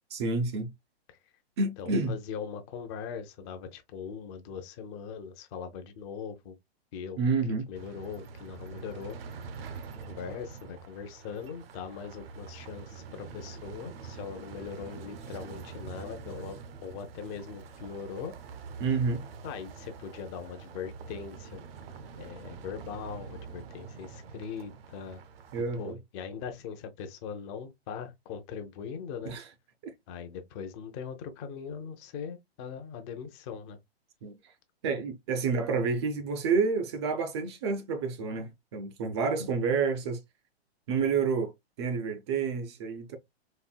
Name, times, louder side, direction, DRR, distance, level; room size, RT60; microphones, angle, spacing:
voice 1, 0.1-0.7 1.6-2.1 7.2-7.7 18.8-19.3 25.5-26.0 29.2-29.4 29.8-29.9 34.2-34.5 34.8-40.2 40.9-43.2, right 4 dB, 25° right, 0.4 m, -29 dB
voice 2, 1.8-6.6 6.9-7.2 7.7-9.5 10.0-18.3 19.4-21.7 22.2-25.2 25.6-29.4 30.1-33.8, left 6 dB, 25° left, 0.6 m, -40 dB
sound 1, 7.7-25.9, right 5 dB, 60° right, 0.7 m, -45 dB
4.3 x 2.5 x 2.2 m
hypercardioid pair, 145°, 32 cm